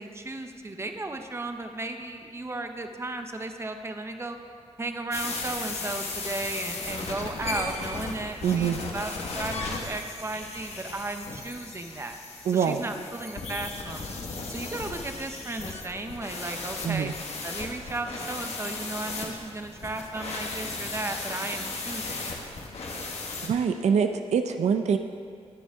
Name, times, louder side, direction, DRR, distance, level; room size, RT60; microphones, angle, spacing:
voice 1, 0.0-4.4 4.8-12.2 12.5-14.2 14.5-17.1 17.4-22.4, right 2 dB, 25° right, 6 dB, 0.8 m, -35 dB
sound 1, 5.1-23.5, left 3 dB, 65° left, 1.5 m, -36 dB
voice 2, 8.4-8.8 12.5-12.8 16.8-17.1 23.4-25.0, right 7 dB, 75° right, 7 dB, 0.6 m, -24 dB
20.5 x 7.0 x 3.6 m, 2.1 s
wide cardioid pair, 115°, 12 cm